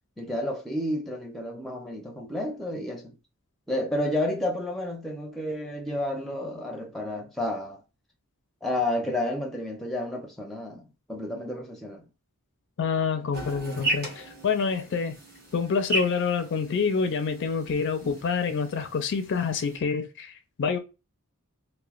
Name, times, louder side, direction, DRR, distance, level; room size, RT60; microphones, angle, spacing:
voice 1, 0.2-3.1 3.7-7.8 8.6-12.0, left 1 dB, ahead, 0.5 m, -31 dB
voice 2, 12.8-15.2 15.5-20.3 20.6-20.8, left 5 dB, 55° left, 0.4 m, -27 dB
sound 1, 13.3-19.8, right 1 dB, 45° right, 1.1 m, -36 dB
3.0 x 2.1 x 2.3 m
head